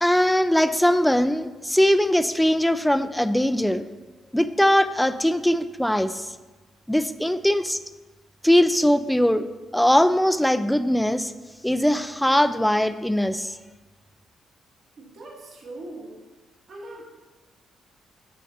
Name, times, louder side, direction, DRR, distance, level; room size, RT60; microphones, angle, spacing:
voice 1, 0.0-3.9 4.3-6.3 6.9-7.8 8.4-9.5 9.7-11.3 11.6-13.6, equal, 5° left, 12 dB, 0.3 m, -21 dB
voice 2, 15.0-16.1 16.7-17.0, right 2 dB, 55° right, -4 dB, 1.6 m, -40 dB
6.5 x 6.3 x 2.9 m, 1.2 s
cardioid pair, 90°, 0 cm